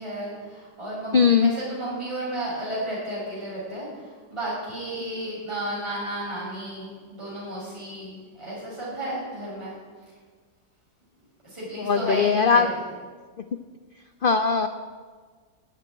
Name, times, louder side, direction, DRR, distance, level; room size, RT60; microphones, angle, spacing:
voice 1, 0.0-9.8 11.4-12.8, right 1 dB, 15° right, -8 dB, 6.3 m, -33 dB
voice 2, 1.1-1.5 11.8-12.7 14.2-14.7, left 5 dB, 70° left, 8 dB, 0.5 m, -19 dB
14.0 x 8.4 x 9.6 m, 1.5 s
omnidirectional pair, 1.8 m